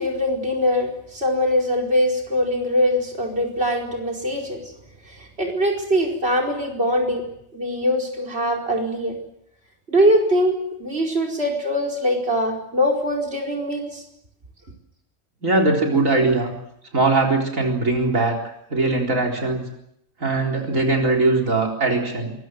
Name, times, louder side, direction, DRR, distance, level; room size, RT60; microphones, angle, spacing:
voice 1, 0.0-4.7 5.1-7.2 7.5-9.1 9.9-14.0, equal, 50° right, 1 dB, 5.1 m, -22 dB
voice 2, 15.4-16.5 16.9-18.4 18.7-19.7 20.2-22.3, right 3 dB, 80° right, 1 dB, 4.5 m, -20 dB
25.0 x 22.5 x 7.9 m, 0.76 s
omnidirectional pair, 1.4 m